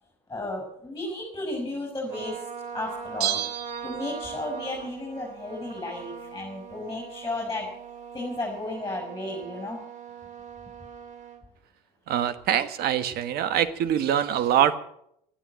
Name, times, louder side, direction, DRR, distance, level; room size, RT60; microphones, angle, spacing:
voice 1, 0.3-2.4 2.7-3.4 3.8-7.7 8.1-9.8, left 2 dB, 15° left, 0 dB, 6.3 m, -33 dB
Trumpet, 2.1-11.4, right 7 dB, 40° right, 2.6 m, -41 dB
Bell, 3.2-4.6 4.9-5.0, right 11 dB, 80° right, 1.2 m, -31 dB
voice 2, 12.1-14.8, right 10 dB, 55° right, 13 dB, 1.3 m, -24 dB
13.5 x 11.0 x 9.1 m, 0.73 s
hypercardioid pair, 80°, 19 cm